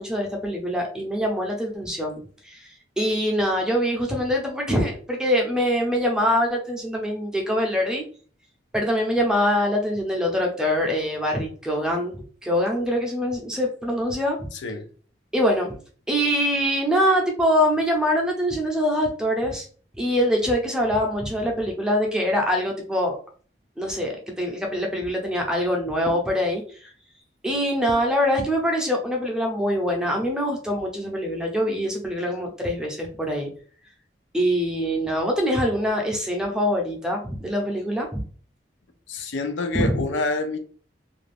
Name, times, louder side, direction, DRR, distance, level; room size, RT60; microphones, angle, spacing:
voice 1, 0.0-8.0 8.7-14.4 15.3-15.8 16.1-19.7 20.0-23.2 23.8-26.9 27.4-33.5 34.3-38.2 39.7-39.9, equal, 5° right, 0.5 m, -24 dB
voice 2, 14.5-14.9 39.1-40.6, left 3 dB, 85° left, 0.5 m, -27 dB
2.5 x 2.3 x 3.3 m
head